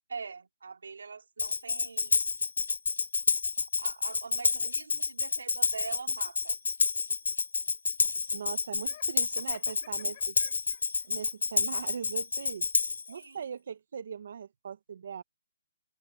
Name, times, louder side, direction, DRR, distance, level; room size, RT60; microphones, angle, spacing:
voice 1, 0.1-2.2 3.8-6.6 13.1-13.4, right 5 dB, 80° right, 3.6 m, -43 dB
Tambourine, 1.4-13.1, left 4 dB, 90° left, 0.7 m, -29 dB
voice 2, 8.3-10.3 11.1-12.7 13.1-15.2, right 7 dB, 55° right, 1.1 m, -40 dB
Laughter, 8.8-11.1, left 14 dB, 35° left, 4.9 m, -54 dB
open air
hypercardioid pair, 160°, 0 cm